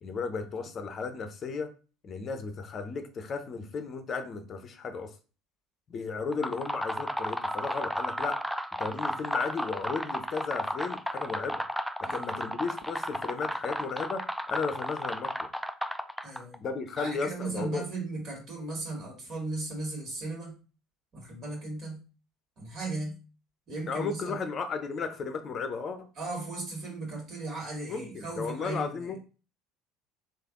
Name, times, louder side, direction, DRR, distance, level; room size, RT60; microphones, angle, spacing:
voice 1, 0.0-1.7 2.0-5.1 5.9-8.4 8.8-11.6 12.1-15.5 16.6-17.8 23.9-26.1 27.9-29.2, left 4 dB, 35° left, 9 dB, 0.6 m, -34 dB
sound 1, 6.2-16.5, equal, ahead, 0.3 m, -34 dB
voice 2, 12.0-12.4 16.2-16.6 17.0-20.6 21.1-22.0 22.6-23.2 23.7-24.4 26.2-29.2, right 2 dB, 50° right, -1 dB, 1.8 m, -37 dB
3.3 x 2.5 x 3.7 m, 0.35 s
figure-of-eight pair, 65°, 0 cm